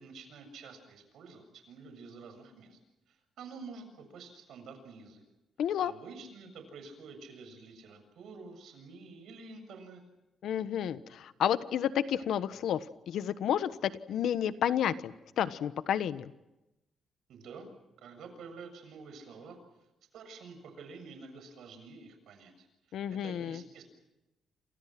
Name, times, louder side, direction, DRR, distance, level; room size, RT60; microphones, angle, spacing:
voice 1, 0.0-2.8 3.1-5.2 5.8-10.0 17.3-17.7 18.0-19.6 20.1-22.7 23.1-23.8, right 4 dB, 65° right, 7 dB, 7.3 m, -49 dB
voice 2, 5.6-5.9 10.4-12.8 13.1-16.3 22.9-23.6, left 9 dB, 65° left, 13 dB, 1.2 m, -31 dB
29.0 x 28.0 x 6.0 m, 0.95 s
cardioid pair, 170°, 0 cm